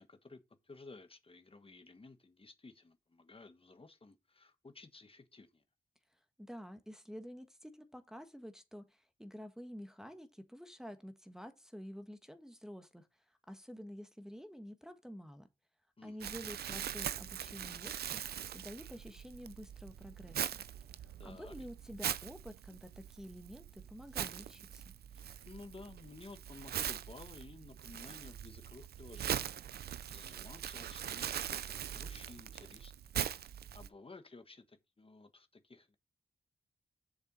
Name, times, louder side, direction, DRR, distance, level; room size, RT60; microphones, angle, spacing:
voice 1, 0.0-5.6 16.0-16.5 21.2-21.5 25.1-33.1 33.7-36.0, left 3 dB, 35° left, 1.3 m, -55 dB
voice 2, 6.4-15.5 16.0-18.2 18.5-20.6 21.2-24.9, equal, 5° right, 1.4 m, -49 dB
Crumpling crinkling, 16.2-33.9, right 10 dB, 85° right, 0.5 m, -42 dB
7.4 x 6.6 x 4.0 m
cardioid pair, 45°, 16 cm